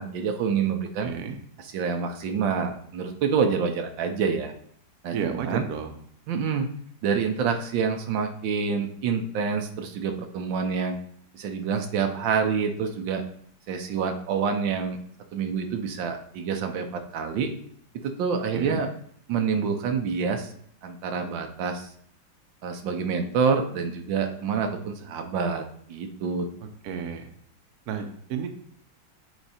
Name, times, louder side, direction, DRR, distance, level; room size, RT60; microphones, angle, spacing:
voice 1, 0.0-1.1 1.7-4.5 5.0-5.7 6.3-6.7 7.0-11.0 11.3-13.2 13.7-15.0 15.3-17.5 18.0-18.9 19.3-20.5 20.8-21.9 22.6-25.6 25.9-26.5, right 6 dB, 85° right, 5 dB, 1.5 m, -27 dB
voice 2, 1.0-1.4 5.1-5.9 18.5-18.8 26.6-27.3 27.9-28.5, right 7 dB, 65° right, 6 dB, 1.1 m, -32 dB
8.1 x 4.0 x 4.2 m, 0.64 s
omnidirectional pair, 2.0 m